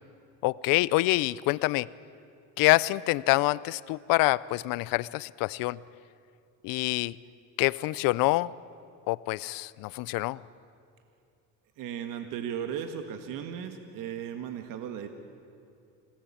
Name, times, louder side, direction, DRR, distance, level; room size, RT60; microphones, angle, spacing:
voice 1, 0.4-1.9 2.6-5.8 6.6-7.2 7.6-8.5 9.1-10.4, left 20 dB, 75° left, 20 dB, 0.7 m, -26 dB
voice 2, 11.8-15.1, right 8 dB, 65° right, 7 dB, 1.8 m, -36 dB
26.5 x 18.5 x 8.7 m, 2.4 s
cardioid pair, 105°, 35 cm